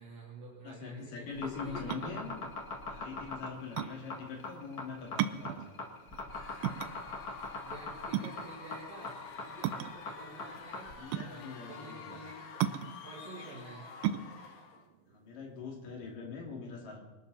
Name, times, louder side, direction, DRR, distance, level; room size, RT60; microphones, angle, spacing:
voice 1, 0.0-2.2 7.6-10.9 11.2-12.6 13.0-13.9, right 2 dB, 50° right, -6 dB, 4.0 m, -49 dB
voice 2, 0.6-2.5 2.8-5.7 11.0-12.2 15.1-17.0, left 5 dB, 65° left, 1 dB, 4.1 m, -43 dB
sound 1, 1.3-10.9, left 3 dB, 45° left, 1.3 m, -41 dB
sound 2, 1.8-16.1, right 11 dB, 80° right, 2.4 m, -37 dB
Screaming / Cheering / Crowd, 6.3-14.9, left 5 dB, 80° left, 3.4 m, -49 dB
24.5 x 12.5 x 4.1 m, 1.1 s
omnidirectional pair, 4.3 m